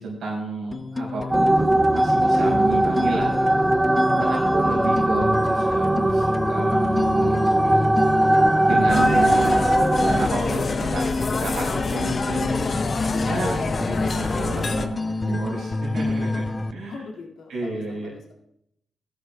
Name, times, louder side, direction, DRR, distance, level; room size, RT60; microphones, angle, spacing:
voice 1, 0.0-3.7 4.1-8.0 8.7-12.8 13.3-16.9 17.5-18.1, right 3 dB, 80° right, -4 dB, 4.6 m, -31 dB
sound 1, 0.7-16.7, left 2 dB, 30° left, 0.6 m, -28 dB
sound 2, 1.3-10.3, right 1 dB, 20° right, 0.6 m, -20 dB
voice 2, 4.3-4.9 13.1-13.7 15.3-15.6 16.9-18.3, left 3 dB, 85° left, -2 dB, 2.2 m, -41 dB
sound 3, 8.9-14.9, left 4 dB, 55° left, 1.0 m, -27 dB
16.5 x 11.5 x 2.3 m, 0.75 s
supercardioid pair, 50°, 0 cm